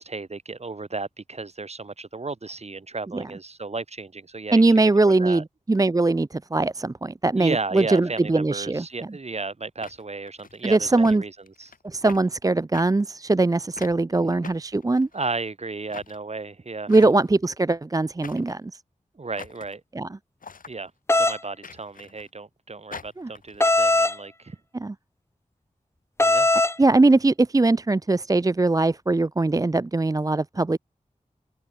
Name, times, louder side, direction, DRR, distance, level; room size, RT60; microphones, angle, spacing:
voice 1, 0.0-4.7 5.0-5.4 7.4-11.3 11.6-11.7 14.1-14.4 15.1-17.0 19.2-19.8 20.7-24.6 26.2-26.5, right 3 dB, 50° right, 7.4 m, -34 dB
voice 2, 4.5-8.8 10.6-11.2 11.8-15.1 16.9-18.8 19.9-20.1 23.2-23.3 24.7-24.9 26.8-30.8, right 2 dB, 25° right, 0.7 m, -21 dB
sound 1, 8.9-9.0 9.8-10.6 11.0-11.2 11.5-11.8 12.1-12.2 12.7-12.8 13.8-14.0 14.4-15.3 15.9-16.2 16.9-17.4 18.2-18.6 19.4-19.7 20.4-20.7 21.6-22.3 22.9-23.7, left 5 dB, 90° left, 6.5 m, -43 dB
sound 2, 21.1-21.4 23.6-24.2 26.2-26.8, left 2 dB, 20° left, 0.9 m, -19 dB
wide cardioid pair, 90°, 14 cm